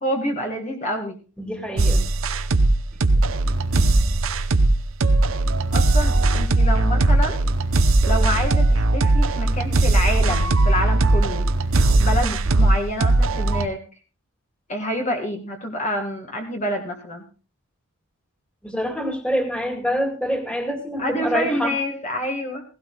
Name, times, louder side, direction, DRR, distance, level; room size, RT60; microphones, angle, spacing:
voice 1, 0.0-1.2 5.7-7.4 8.0-11.5 12.0-13.8 14.7-17.2 21.0-22.6, equal, 35° left, 2 dB, 1.6 m, -27 dB
voice 2, 1.4-2.1 3.7-4.0 18.6-21.7, equal, 5° left, 3 dB, 2.2 m, -26 dB
sound 1, 1.8-13.7, right 2 dB, 70° right, 0.8 m, -19 dB
17.0 x 16.5 x 2.3 m, 0.34 s
head